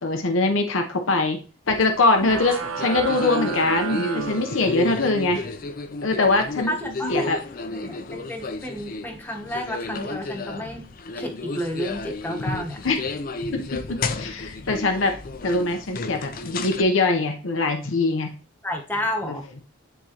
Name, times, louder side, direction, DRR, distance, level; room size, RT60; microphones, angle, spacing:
voice 1, 0.0-1.4 1.7-5.4 6.0-6.7 7.1-7.4 12.8-13.0 13.5-15.1 15.4-18.4 19.3-19.4, left 2 dB, 85° left, 5 dB, 0.8 m, -22 dB
sound 1, 1.7-16.8, left 3 dB, 45° left, 0.5 m, -32 dB
sound 2, 2.2-5.1, right 6 dB, 85° right, 0.6 m, -32 dB
voice 2, 6.7-7.3 7.7-10.9 11.2-12.8 18.6-19.4, equal, 10° left, 1 dB, 1.1 m, -31 dB
10.0 x 3.7 x 2.9 m, 0.36 s
head